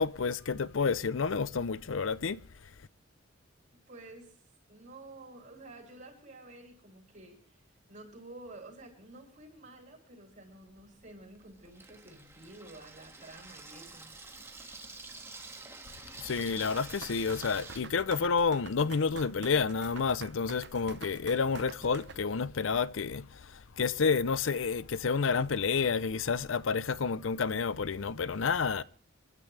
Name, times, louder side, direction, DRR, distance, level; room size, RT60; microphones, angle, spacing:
voice 1, 0.0-2.4 16.2-28.8, left 5 dB, 75° left, 0.6 m, -30 dB
voice 2, 3.7-4.4 4.7-7.6 7.9-14.1, right 2 dB, 40° right, 7.8 m, -51 dB
Water tap faucet / Sink (filling or washing), 10.7-17.8, right 3 dB, 15° right, 1.8 m, -48 dB
sound 1, 16.4-22.2, right 5 dB, 60° right, 0.9 m, -47 dB
28.5 x 12.5 x 3.3 m
head